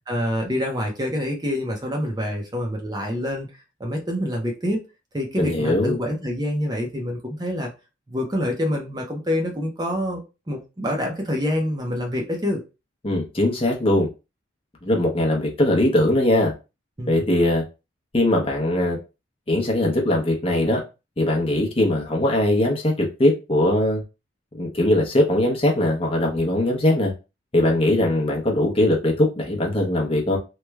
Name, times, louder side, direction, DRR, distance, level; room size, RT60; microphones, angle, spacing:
voice 1, 0.1-3.5 3.8-4.8 5.1-7.7 8.1-10.2 10.5-12.6 17.0-17.1, left 1 dB, 20° right, 1 dB, 0.6 m, -26 dB
voice 2, 5.4-5.9 13.0-14.1 14.8-16.5 17.1-17.6 18.1-19.0 19.5-20.8 21.2-24.0 24.6-27.1 27.5-30.4, left 1 dB, 30° left, 0 dB, 0.7 m, -20 dB
3.1 x 2.1 x 3.3 m, 0.28 s
head